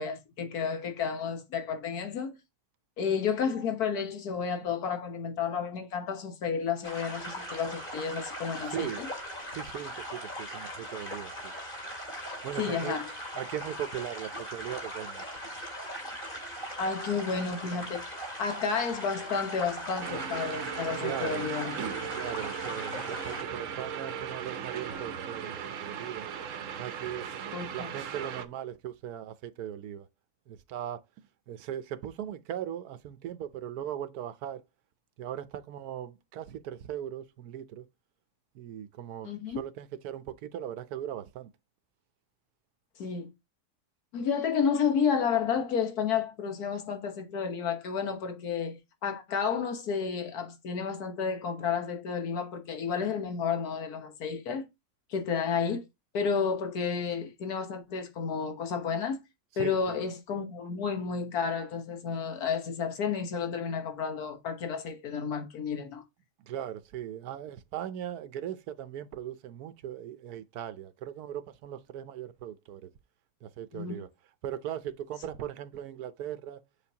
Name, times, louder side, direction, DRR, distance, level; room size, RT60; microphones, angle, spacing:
voice 1, 0.0-2.3 3.0-9.1 12.6-13.1 16.8-21.8 27.5-27.9 39.2-39.6 43.0-43.3 44.1-54.7 55.1-55.8 56.1-59.2 59.6-66.0 73.7-74.0, left 6 dB, 80° left, 1.7 m, -31 dB
sound 1, 6.8-23.4, equal, 35° left, 2.6 m, -40 dB
voice 2, 8.6-9.0 9.5-11.5 12.4-13.0 13.3-15.4 21.0-21.5 22.2-26.3 26.8-27.3 27.7-30.1 30.5-31.0 31.5-34.6 35.2-37.8 38.5-41.5 59.5-60.0 66.4-72.9 73.4-74.1 74.4-76.6, right 10 dB, 80° right, 1.3 m, -39 dB
sound 2, 20.0-28.5, right 7 dB, 60° right, 1.1 m, -37 dB
7.0 x 6.3 x 2.8 m
omnidirectional pair, 1.6 m